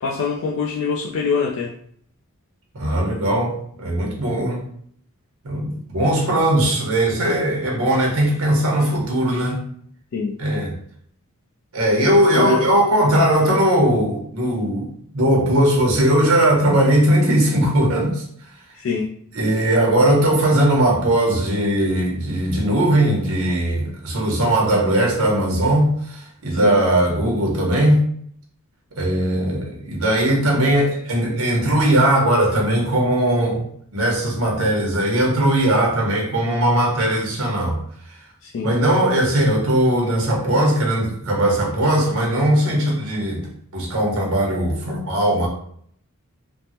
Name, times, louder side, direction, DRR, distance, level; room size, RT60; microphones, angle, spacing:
voice 1, 0.0-1.7 10.1-10.3 12.3-12.6 18.7-19.1 26.5-26.8 38.4-38.7, left 5 dB, 60° left, -2 dB, 0.3 m, -24 dB
voice 2, 2.7-4.6 5.4-9.6 10.4-10.7 11.7-18.2 19.3-28.0 28.9-33.6 33.9-37.8 38.6-45.5, right 1 dB, 75° right, -2 dB, 1.0 m, -19 dB
3.4 x 2.0 x 2.8 m, 0.63 s
head